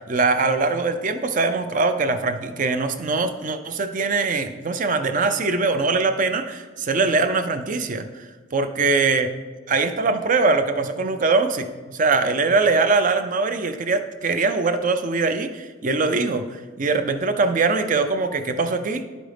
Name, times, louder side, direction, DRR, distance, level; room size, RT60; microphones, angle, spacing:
voice 1, 0.0-8.3 8.5-9.3 9.7-19.0, right 3 dB, 40° right, 9 dB, 0.5 m, -22 dB
11.0 x 5.1 x 3.4 m, 1.3 s
head